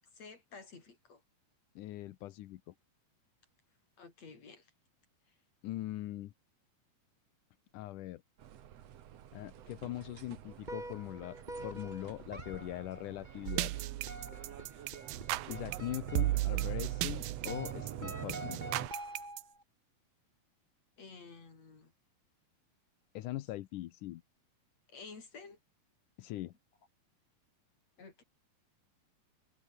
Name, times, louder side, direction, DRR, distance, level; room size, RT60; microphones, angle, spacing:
voice 1, 0.1-1.2 4.0-4.7 21.0-21.9 24.9-25.6 28.0-28.2, left 4 dB, 45° left, 6.3 m, -52 dB
voice 2, 1.8-2.7 5.6-6.3 7.7-8.2 9.3-13.7 15.5-18.6 23.1-24.2 26.2-26.5, left 15 dB, 70° left, 2.2 m, -41 dB
sound 1, 8.4-18.9, right 10 dB, 55° right, 2.0 m, -46 dB
sound 2, 10.6-19.6, right 1 dB, 10° right, 7.4 m, -47 dB
sound 3, 13.5-19.4, right 17 dB, 85° right, 2.7 m, -35 dB
omnidirectional pair, 4.2 m